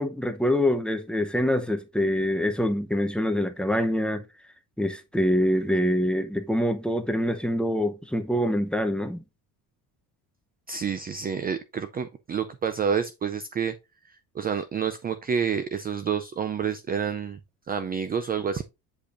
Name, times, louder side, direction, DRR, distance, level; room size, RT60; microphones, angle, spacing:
voice 1, 0.0-4.2 4.8-9.2, equal, ahead, 0.7 m, -25 dB
voice 2, 10.7-13.7 14.4-17.4 17.7-18.6, right 7 dB, 25° right, 0.4 m, -28 dB
8.4 x 5.1 x 2.5 m
cardioid pair, 125°, 41 cm